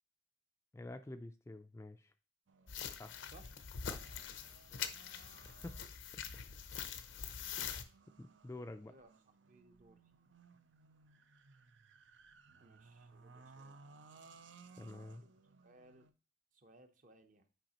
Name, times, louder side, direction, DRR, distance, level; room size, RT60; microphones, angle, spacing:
voice 1, 0.7-2.1 3.0-3.1 3.9-4.0 5.4-5.8 8.2-8.9 14.8-15.2, left 2 dB, 15° left, 8 dB, 0.3 m, -48 dB
sound 1, 2.5-16.1, right 4 dB, 75° right, 0.5 m, -62 dB
sound 2, 2.7-7.8, left 7 dB, 85° left, 0.7 m, -44 dB
voice 2, 9.5-10.0 12.6-13.8 15.2-16.1 16.5-17.5, right 2 dB, 45° right, 7 dB, 0.8 m, -63 dB
9.0 x 4.9 x 2.9 m, 0.34 s
head